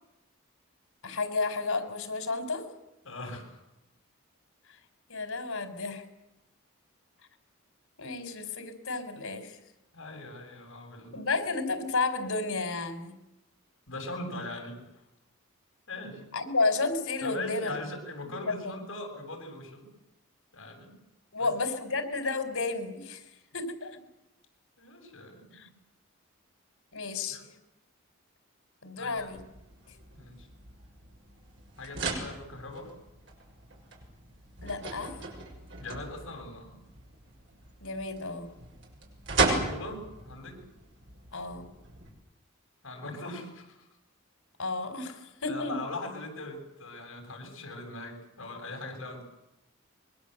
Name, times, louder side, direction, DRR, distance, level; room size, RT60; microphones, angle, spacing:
voice 1, 1.0-2.7 5.1-6.0 8.0-9.6 11.1-13.1 16.3-17.7 18.2-18.8 21.3-23.2 23.5-24.0 25.5-25.7 26.9-27.5 28.8-29.4 34.6-35.1 37.8-38.5 41.3-41.7 44.6-45.8, left 3 dB, 90° left, 8 dB, 4.4 m, -32 dB
voice 2, 3.0-3.6 9.9-11.3 13.9-14.8 15.9-16.3 17.2-19.9 20.5-20.9 21.4-21.5 24.8-25.7 27.3-27.4 29.0-29.3 30.1-30.5 31.8-32.9 35.8-36.8 39.5-40.6 42.8-43.9 45.4-49.2, left 2 dB, 70° left, 3 dB, 7.7 m, -40 dB
sound 1, 29.2-42.1, right 3 dB, 55° right, 6.5 m, -36 dB
25.5 x 22.5 x 8.1 m, 0.88 s
head